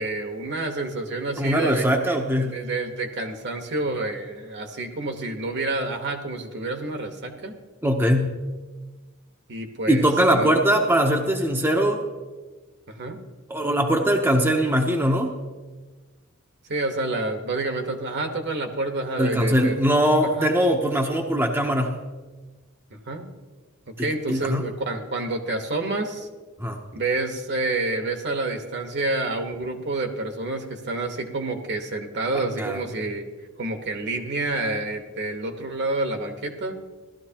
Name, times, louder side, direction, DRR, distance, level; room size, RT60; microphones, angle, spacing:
voice 1, 0.0-7.6 9.5-10.5 12.9-13.2 16.7-19.8 20.2-20.5 22.9-23.3 24.0-26.3 26.9-33.3 33.6-36.8, right 2 dB, 55° right, 5 dB, 1.2 m, -28 dB
voice 2, 1.4-2.6 7.8-8.3 9.9-12.0 13.5-15.3 19.2-21.9 24.3-24.6 26.6-26.8 32.3-32.8, equal, 10° right, 2 dB, 0.8 m, -21 dB
16.0 x 12.5 x 2.9 m, 1.3 s
head